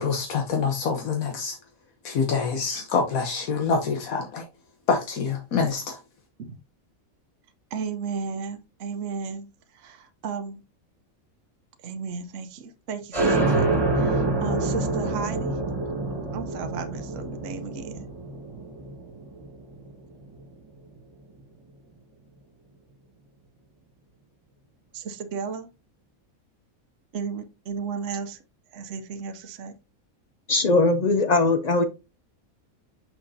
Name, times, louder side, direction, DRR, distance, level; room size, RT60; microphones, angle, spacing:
voice 1, 0.0-1.6 2.0-4.4 4.9-6.0, left 5 dB, 80° left, 1.4 m, -26 dB
voice 2, 7.7-9.5 9.7-10.6 11.8-15.6 16.1-18.1 24.9-25.7 27.1-28.4 28.7-29.7, right 5 dB, 65° right, 1.1 m, -34 dB
sound 1, 13.1-20.4, right 2 dB, 20° right, 1.6 m, -26 dB
voice 3, 30.5-31.8, left 3 dB, 55° left, 0.4 m, -20 dB
6.2 x 6.0 x 2.7 m
omnidirectional pair, 1.4 m